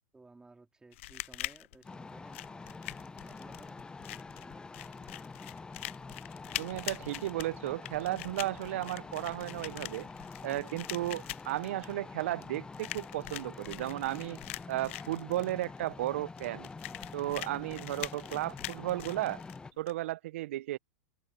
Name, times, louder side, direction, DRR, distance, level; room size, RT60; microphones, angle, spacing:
voice 1, 0.1-3.8 4.3-4.7, right 3 dB, 10° right, 4.1 m, -58 dB
sound 1, 0.9-19.9, left 17 dB, 60° left, 0.4 m, -44 dB
sound 2, 1.8-19.7, left 4 dB, 10° left, 0.8 m, -46 dB
sound 3, 3.0-3.1 3.5-3.6 4.0-4.1 4.5-4.6 5.0-5.1 5.5-5.6 6.0-6.1 6.5-6.6 7.0-7.1 7.5-7.6 8.0-8.1 8.5-8.6 9.1-9.2 9.6-9.7 10.1-10.2 10.6-10.7, left 12 dB, 35° left, 2.2 m, -59 dB
voice 2, 6.6-10.1 10.4-14.4 14.7-16.7 17.1-19.4 19.8-20.8, right 15 dB, 65° right, 0.9 m, -34 dB
hypercardioid pair, 105°, 8 cm